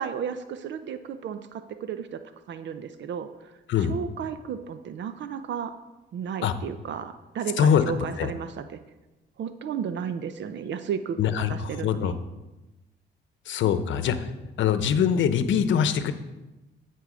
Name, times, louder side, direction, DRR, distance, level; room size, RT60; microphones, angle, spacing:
voice 1, 0.0-2.2 2.5-3.5 3.8-5.8 6.1-8.8 9.4-12.2, right 7 dB, 65° right, 10 dB, 0.6 m, -33 dB
voice 2, 11.2-12.1 13.5-14.3 14.6-16.1, left 8 dB, 70° left, 11 dB, 0.8 m, -23 dB
13.0 x 4.6 x 6.2 m, 1.1 s
cardioid pair, 90°, 20 cm